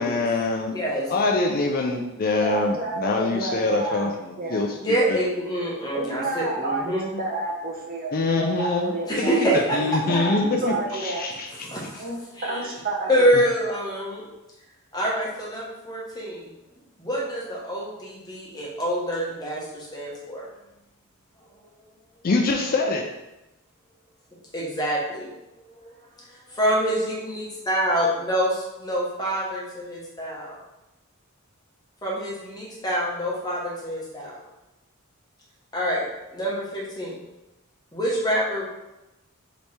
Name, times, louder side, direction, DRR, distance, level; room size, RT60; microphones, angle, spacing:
voice 1, 0.0-0.7 1.1-4.7 8.1-8.9 9.2-9.3 9.5-10.7 11.0-11.7 22.2-23.0, left 3 dB, 40° left, 2 dB, 0.4 m, -24 dB
voice 2, 0.7-1.1 4.7-7.1 9.0-9.8 11.7-12.1 12.4-12.6 13.0-14.3 14.9-16.5 17.0-20.5 24.5-25.3 25.7-25.9 26.6-30.6 32.0-34.4 35.7-37.2 37.9-38.7, equal, 20° left, -5 dB, 1.1 m, -26 dB
voice 3, 2.4-4.1 4.4-4.7 5.9-9.4 9.7-11.2 12.0-13.2, right 2 dB, 40° right, -2 dB, 0.8 m, -30 dB
3.3 x 3.1 x 4.2 m, 0.97 s
head